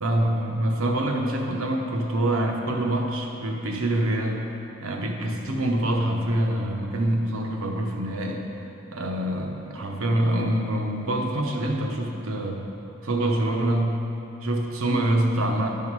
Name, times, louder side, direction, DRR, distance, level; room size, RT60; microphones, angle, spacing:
voice 1, 0.0-4.4 4.8-8.5 8.9-12.6 13.0-14.0 14.4-15.7, right 1 dB, 70° right, 1 dB, 1.0 m, -25 dB
11.5 x 5.7 x 4.7 m, 2.9 s
head